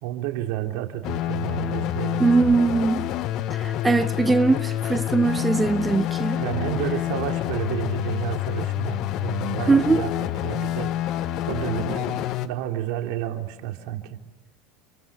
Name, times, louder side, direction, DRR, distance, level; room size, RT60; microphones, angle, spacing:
voice 1, 0.0-2.6 6.4-11.2 11.5-14.2, right 11 dB, 70° right, 3.3 m, -31 dB
sound 1, 1.0-12.5, left 13 dB, 55° left, 1.2 m, -27 dB
voice 2, 2.2-3.1 3.5-6.4 9.7-10.0, right 3 dB, 10° right, 0.9 m, -21 dB
29.0 x 24.5 x 7.3 m
supercardioid pair, 105°, 0 cm